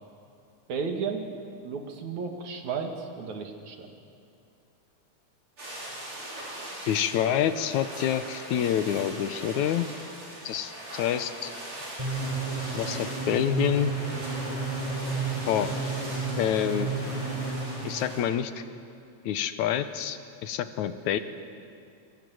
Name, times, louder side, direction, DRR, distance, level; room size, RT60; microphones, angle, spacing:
voice 1, 0.7-1.2 1.6-3.9, right 5 dB, 65° right, 4 dB, 3.4 m, -33 dB
sound 1, 5.6-18.2, right 1 dB, 40° right, 6.8 m, -41 dB
voice 2, 6.8-9.9 10.5-11.5 12.7-13.9 15.5-15.7 16.4-16.9 17.8-18.6 19.3-21.2, left 10 dB, 75° left, 11 dB, 2.2 m, -27 dB
sound 2, 12.0-18.5, right 3 dB, 10° right, 4.6 m, -32 dB
28.0 x 23.5 x 7.8 m, 2.5 s
omnidirectional pair, 3.6 m